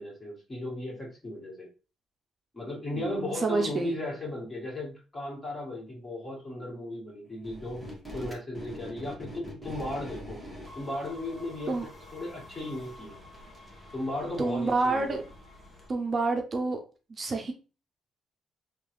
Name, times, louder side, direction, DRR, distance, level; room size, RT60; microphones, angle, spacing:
voice 1, 0.0-1.7 2.5-7.8 8.1-10.4 10.7-13.2 13.9-15.2, left 1 dB, 25° left, -3 dB, 1.8 m, -36 dB
voice 2, 2.9-3.9 11.7-11.9 14.4-15.2 15.9-16.8 17.1-17.5, right 3 dB, 40° right, 4 dB, 0.5 m, -28 dB
sound 1, 7.4-15.9, equal, 5° left, 1.3 m, -45 dB
3.6 x 2.4 x 3.0 m, 0.34 s
cardioid pair, 90°, 0 cm